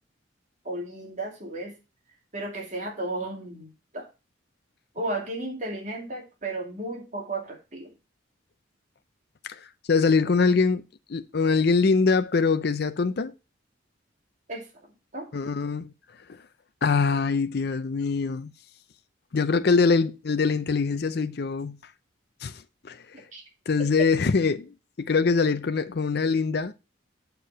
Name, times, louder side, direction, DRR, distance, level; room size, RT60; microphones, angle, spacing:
voice 1, 0.6-1.8 2.3-4.1 4.9-7.9 14.5-14.7 15.1-15.3 23.3-23.4, right 2 dB, 40° right, 2.4 m, -34 dB
voice 2, 9.9-10.8 11.1-13.3 15.3-15.9 16.3-16.4 16.8-18.5 19.3-21.8 22.4-23.0 23.7-26.7, left 4 dB, 55° left, 0.5 m, -23 dB
6.6 x 4.7 x 5.5 m
head